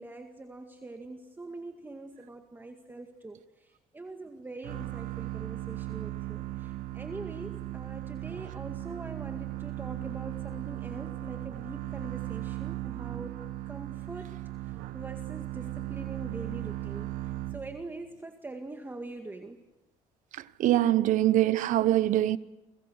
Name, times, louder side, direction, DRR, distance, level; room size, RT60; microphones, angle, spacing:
voice 1, 0.0-3.4 3.9-13.4 13.7-14.4 14.9-17.1 17.5-19.6, right 2 dB, 15° right, 2.0 m, -43 dB
sound 1, 4.6-18.0, right 16 dB, 85° right, 1.5 m, -37 dB
voice 2, 20.6-22.4, right 13 dB, 70° right, 1.0 m, -23 dB
29.5 x 25.0 x 6.5 m
cardioid pair, 120°, 14 cm